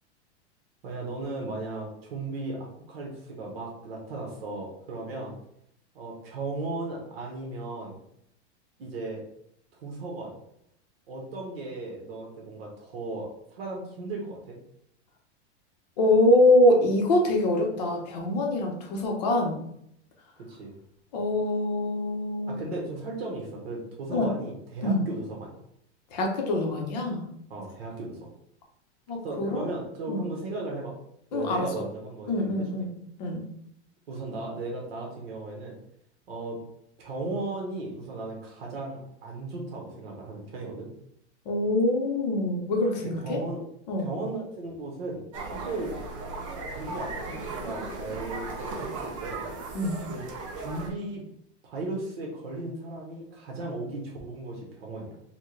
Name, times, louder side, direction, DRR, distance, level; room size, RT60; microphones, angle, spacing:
voice 1, 0.8-5.4 5.9-8.0 8.8-9.2 9.8-10.3 11.1-14.6 20.4-20.7 22.5-25.5 27.5-28.3 29.2-30.9 31.3-32.7 34.1-35.8 36.3-36.6 37.0-40.9 43.0-43.6 44.0-45.2 45.5-45.9 46.5-49.4 50.0-50.3 50.6-51.2 51.6-55.2, right 2 dB, 55° right, -1 dB, 1.1 m, -36 dB
voice 2, 16.0-19.6 21.1-22.6 24.1-24.3 24.8-25.0 26.1-27.2 29.1-29.7 30.1-30.3 31.3-31.7 32.3-32.9 33.2-33.4 41.5-43.4 43.9-44.1 49.7-50.0, left 1 dB, 35° left, 1 dB, 0.7 m, -24 dB
sound 1, 45.3-50.9, right 3 dB, 30° right, 0.4 m, -36 dB
4.4 x 2.2 x 3.2 m, 0.73 s
supercardioid pair, 180°, 35 cm